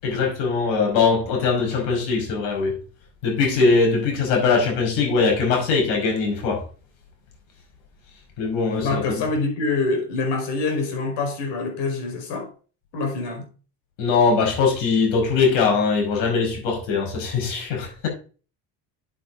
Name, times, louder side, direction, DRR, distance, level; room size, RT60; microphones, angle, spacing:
voice 1, 0.0-2.8 3.2-6.6 8.4-9.2 14.0-18.1, left 4 dB, 85° left, 5.4 m, -21 dB
voice 2, 8.8-12.5 12.9-13.5, left 3 dB, 70° left, 4.9 m, -25 dB
8.3 x 7.9 x 3.8 m
cardioid pair, 110°, 43 cm